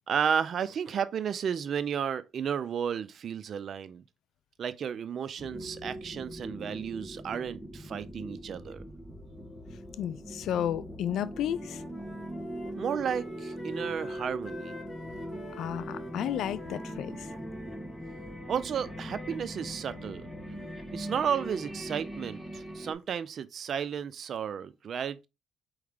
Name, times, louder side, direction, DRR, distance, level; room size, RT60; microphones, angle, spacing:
voice 1, 0.1-4.0 4.6-8.8 12.8-14.7 18.5-20.3 20.9-25.3, right 7 dB, 60° right, 0.5 m, -33 dB
sound 1, 5.4-22.9, equal, ahead, 1.4 m, -41 dB
voice 2, 10.0-11.8 15.6-17.3, left 10 dB, 80° left, 0.3 m, -32 dB
Wind instrument woodwind instrument, 11.1-17.9, left 1 dB, 35° left, 1.7 m, -48 dB
4.7 x 3.2 x 3.5 m
cardioid pair, 90°, 0 cm